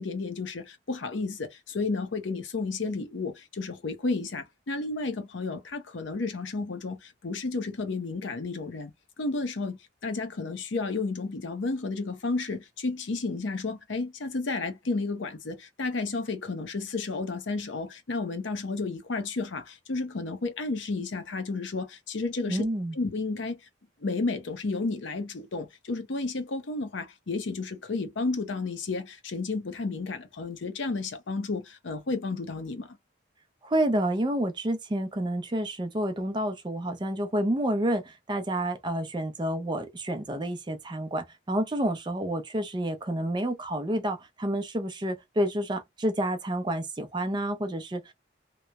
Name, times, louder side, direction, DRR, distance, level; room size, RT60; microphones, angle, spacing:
voice 1, 0.0-8.9 9.2-22.7 23.0-23.6 24.0-33.0, left 3 dB, 75° left, 0.6 m, -32 dB
voice 2, 22.5-23.0 33.6-48.1, right 1 dB, 25° right, 0.4 m, -29 dB
2.9 x 2.0 x 2.2 m
head